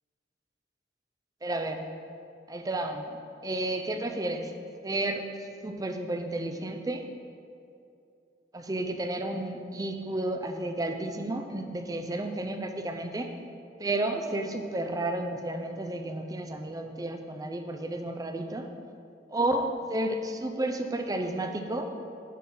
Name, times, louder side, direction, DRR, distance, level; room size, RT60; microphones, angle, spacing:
voice 1, 1.4-1.9 2.5-3.1 3.4-4.5 4.8-5.2 5.6-7.0 8.5-13.3 13.8-18.7 19.3-21.9, right 1 dB, 20° right, 6 dB, 0.5 m, -32 dB
9.3 x 6.0 x 3.8 m, 2.5 s
head